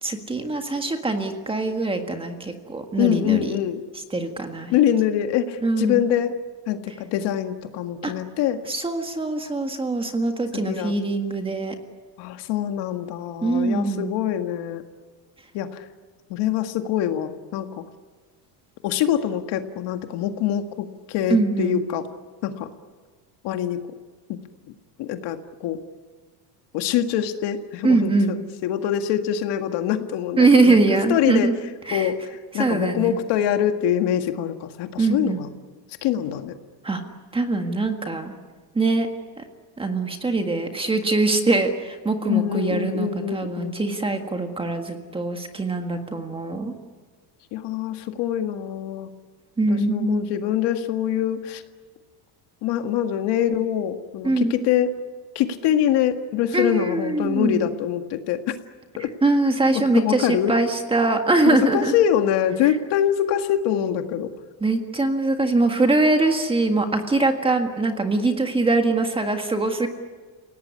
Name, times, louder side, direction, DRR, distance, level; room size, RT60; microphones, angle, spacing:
voice 1, 0.0-3.5 4.1-4.7 5.6-6.0 8.0-8.1 8.7-11.7 13.4-14.1 21.3-21.8 27.8-28.3 30.4-31.5 31.9-32.1 32.6-33.2 35.0-35.4 36.8-37.0 37.3-38.4 38.7-39.1 39.4-39.5 39.8-46.7 49.6-50.3 54.2-54.5 56.5-57.6 59.2-61.9 64.6-69.9, right 3 dB, 10° right, 5 dB, 1.7 m, -22 dB
voice 2, 3.0-3.8 4.7-6.4 6.7-8.6 10.5-10.9 12.2-14.8 15.5-15.8 16.3-17.8 18.8-22.0 22.4-22.7 23.4-23.8 25.0-25.8 26.7-31.5 31.9-32.2 32.5-35.5 36.0-36.5 42.3-43.8 47.5-49.1 49.7-51.6 52.6-54.9 55.4-58.5 59.0-59.1 59.7-60.6 61.5-64.3, left 10 dB, 55° left, 7 dB, 1.9 m, -24 dB
29.0 x 18.0 x 9.7 m, 1.4 s
cardioid pair, 160°, 48 cm